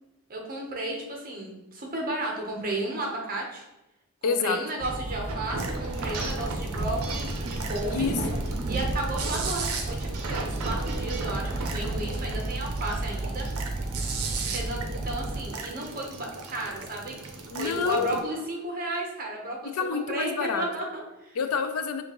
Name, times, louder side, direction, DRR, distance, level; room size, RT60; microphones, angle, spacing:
voice 1, 0.3-3.6 4.2-8.1 8.7-13.5 14.4-17.2 17.6-21.4, right 1 dB, 40° right, 0 dB, 0.9 m, -33 dB
voice 2, 4.2-4.6 7.9-8.4 17.5-18.1 19.7-20.7 21.3-22.0, left 5 dB, 80° left, 8 dB, 0.4 m, -28 dB
sound 1, 4.8-15.5, right 2 dB, 25° right, 0.3 m, -32 dB
sound 2, 5.3-18.2, right 4 dB, 85° right, 0.6 m, -36 dB
5.1 x 2.5 x 2.9 m, 0.97 s
head